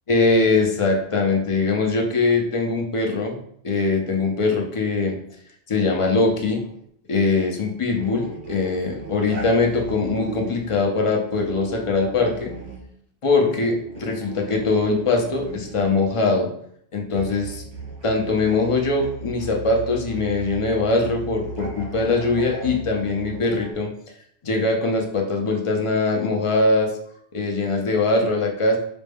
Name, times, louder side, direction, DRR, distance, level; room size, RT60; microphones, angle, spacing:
voice 1, 0.1-3.4 3.6-5.2 5.7-6.6 7.1-12.5 13.2-16.5 16.9-17.6 18.0-23.9 24.4-26.9 27.3-28.8, left 3 dB, 40° left, 1 dB, 0.6 m, -22 dB
sound 1, 6.1-6.8 7.9-10.8 11.3-12.9 13.8-16.1 17.1-23.7, right 4 dB, 80° right, 1.1 m, -36 dB
5.0 x 2.2 x 3.4 m, 0.69 s
omnidirectional pair, 1.1 m